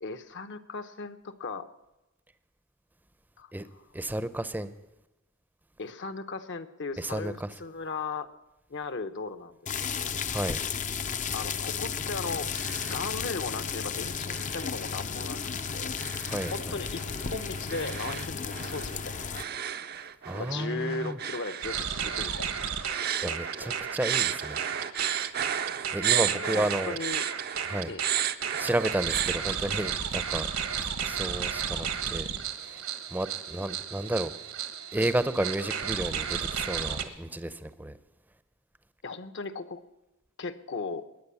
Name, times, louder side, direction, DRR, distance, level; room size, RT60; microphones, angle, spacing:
voice 1, 0.0-1.7 3.4-3.5 5.8-8.3 8.7-9.6 9.9-10.2 11.3-12.5 12.8-15.4 15.7-15.9 16.5-17.0 17.3-19.5 20.3-22.7 23.2-23.3 23.6-23.7 26.3-27.3 27.9-28.0 39.0-39.8 40.4-41.1, left 3 dB, 55° left, 0.9 m, -37 dB
voice 2, 3.9-4.7 7.0-7.5 10.3-10.6 16.3-16.8 20.3-21.2 23.2-24.6 25.9-27.0 27.7-27.9 28.6-30.5 31.0-32.3 32.6-32.8 33.1-34.3 34.9-38.0, right 1 dB, 10° right, 0.7 m, -32 dB
sound 1, 9.7-19.4, left 6 dB, 35° left, 0.6 m, -34 dB
sound 2, 12.3-13.1 13.4-13.9 14.3-29.4, right 10 dB, 45° right, 0.6 m, -34 dB
sound 3, 21.6-37.0, right 7 dB, 75° right, 1.4 m, -33 dB
21.5 x 9.5 x 7.1 m
head